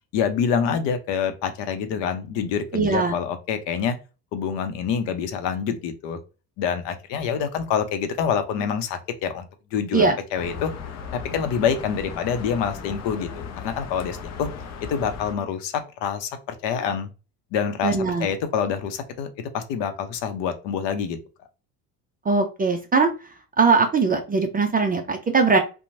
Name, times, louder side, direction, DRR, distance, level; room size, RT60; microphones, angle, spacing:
voice 1, 0.1-4.0 4.3-6.2 6.6-9.5 9.7-10.1 10.3-10.7 11.1-14.5 14.9-17.1 17.5-19.3 19.5-21.2, left 7 dB, 60° left, 8 dB, 0.7 m, -26 dB
voice 2, 2.7-3.1 9.9-10.1 17.8-18.3 22.3-23.1 23.6-25.6, right 4 dB, 20° right, 4 dB, 0.4 m, -20 dB
sound 1, 10.4-15.3, left 6 dB, 35° left, 0.6 m, -36 dB
2.8 x 2.2 x 2.6 m, 0.31 s
hypercardioid pair, 75°, 49 cm